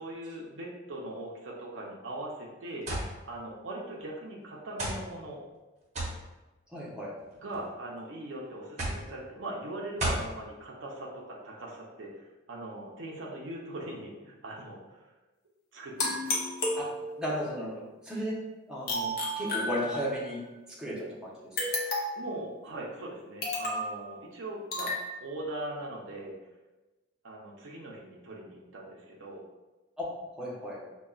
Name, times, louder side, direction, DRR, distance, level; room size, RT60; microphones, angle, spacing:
voice 1, 0.0-2.9 3.2-5.4 7.4-15.0 15.7-16.5 22.2-24.9 25.2-26.3 27.2-29.4, right 1 dB, 75° right, -3 dB, 0.6 m, -40 dB
sound 1, 2.9-3.1 4.0-4.1 4.8-5.0 5.9-6.2 7.2-7.6 8.8-9.1 10.0-10.3, right 1 dB, 35° right, 0.8 m, -31 dB
voice 2, 6.7-7.1 16.8-16.9 17.2-18.3 18.7-20.4 20.8-21.3 30.0-30.1 30.4-30.8, equal, 5° right, -7 dB, 0.8 m, -34 dB
sound 2, 16.0-17.4 18.9-20.3 21.6-22.3 23.4-23.9 24.7-25.1, left 1 dB, 50° left, 0.7 m, -32 dB
5.3 x 2.2 x 2.4 m, 1.1 s
head